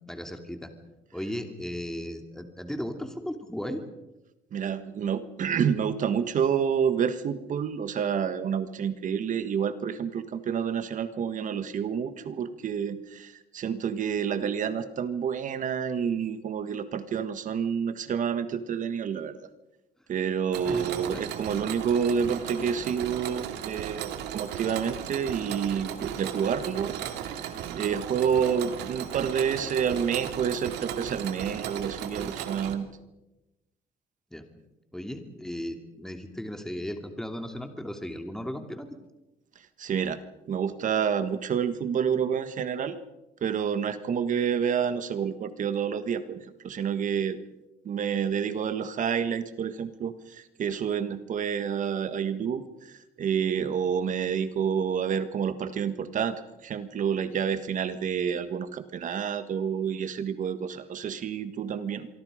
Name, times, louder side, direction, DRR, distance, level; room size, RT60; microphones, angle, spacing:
voice 1, 0.1-0.7 1.1-3.8 20.7-21.2 34.3-34.4 34.9-38.9, equal, 5° left, 5 dB, 2.7 m, -36 dB
voice 2, 4.5-19.4 20.1-32.9 39.8-40.2 40.5-43.0 43.4-47.4 47.8-62.1, right 7 dB, 50° right, 11 dB, 1.5 m, -29 dB
Mechanisms, 20.5-32.7, right 10 dB, 85° right, 2.4 m, -36 dB
27.0 x 24.0 x 5.1 m, 0.97 s
cardioid pair, 110°, 17 cm